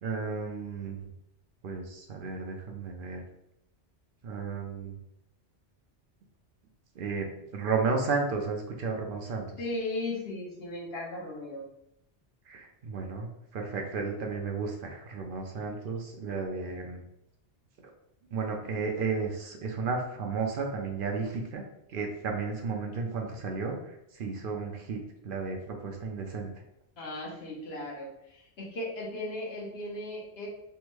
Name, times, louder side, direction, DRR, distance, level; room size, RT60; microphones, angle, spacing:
voice 1, 0.0-1.0 1.6-3.2 4.2-5.0 7.0-9.5 12.5-13.3 13.5-17.0 18.3-21.6 21.9-23.8 24.2-25.0 25.2-25.6 25.8-26.5, right 4 dB, 60° right, 2 dB, 0.6 m, -33 dB
voice 2, 9.6-11.7 27.0-30.5, left 2 dB, 65° left, -2 dB, 1.1 m, -36 dB
3.4 x 2.1 x 3.0 m, 0.82 s
omnidirectional pair, 1.1 m